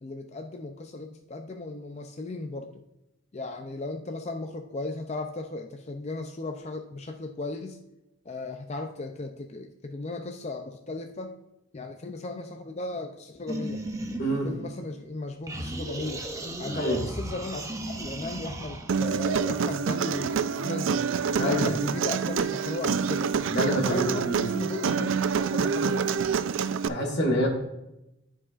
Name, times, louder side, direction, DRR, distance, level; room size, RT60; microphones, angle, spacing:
voice 1, 0.0-2.8 3.3-7.8 8.3-11.3 11.7-13.8 14.4-16.2 16.6-23.3 23.8-26.0, left 2 dB, 30° left, 5 dB, 0.5 m, -36 dB
sound 1, 13.5-15.1 15.5-18.9, right 1 dB, 15° right, 0.6 m, -36 dB
voice 2, 14.2-14.5 16.7-17.0 21.4-21.7 23.5-24.4 26.9-27.5, equal, 55° left, 0 dB, 2.0 m, -26 dB
Human voice, 18.9-26.9, right 6 dB, 65° right, 0.4 m, -27 dB
13.5 x 4.9 x 2.5 m, 0.90 s
head